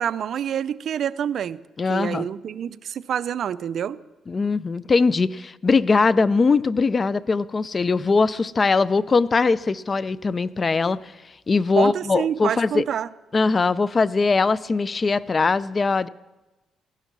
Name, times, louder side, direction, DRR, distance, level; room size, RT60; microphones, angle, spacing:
voice 1, 0.0-1.6 1.9-4.0 11.8-13.1, right 9 dB, 65° right, 17 dB, 0.4 m, -27 dB
voice 2, 1.8-2.3 4.3-11.0 11.5-12.8 13.3-16.1, left 4 dB, 35° left, 19 dB, 0.4 m, -21 dB
16.0 x 11.5 x 6.0 m, 1.1 s
cardioid pair, 90°, 0 cm